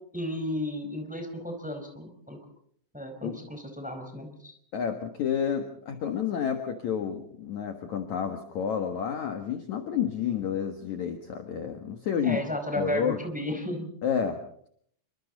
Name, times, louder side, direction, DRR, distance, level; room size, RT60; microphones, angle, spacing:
voice 1, 0.1-2.4 2.9-4.5 12.2-13.9, left 1 dB, ahead, 4 dB, 4.1 m, -33 dB
voice 2, 4.7-12.4 12.8-13.2 14.0-14.4, left 8 dB, 55° left, 5 dB, 2.4 m, -30 dB
27.0 x 24.5 x 4.1 m, 0.62 s
omnidirectional pair, 4.7 m